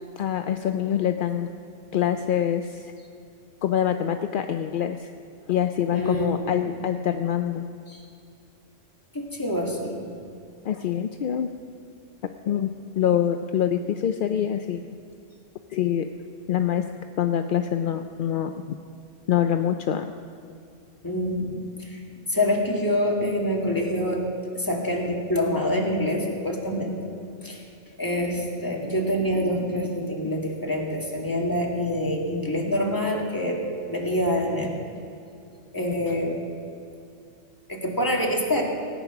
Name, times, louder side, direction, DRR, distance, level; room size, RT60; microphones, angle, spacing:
voice 1, 0.2-1.5 1.9-2.9 3.6-5.1 5.5-7.7 10.6-11.5 12.5-12.7 13.0-14.9 15.7-16.1 16.5-16.9 17.2-18.5 19.3-20.1, left 9 dB, 60° left, 7 dB, 0.5 m, -25 dB
voice 2, 5.9-6.6 7.9-8.0 9.1-10.1 21.0-22.0 22.3-24.2 24.5-27.1 27.4-27.6 28.0-33.6 33.9-34.8 35.7-36.4 37.7-38.6, left 1 dB, 15° left, -2 dB, 2.1 m, -26 dB
18.5 x 9.4 x 5.9 m, 2.5 s
omnidirectional pair, 1.3 m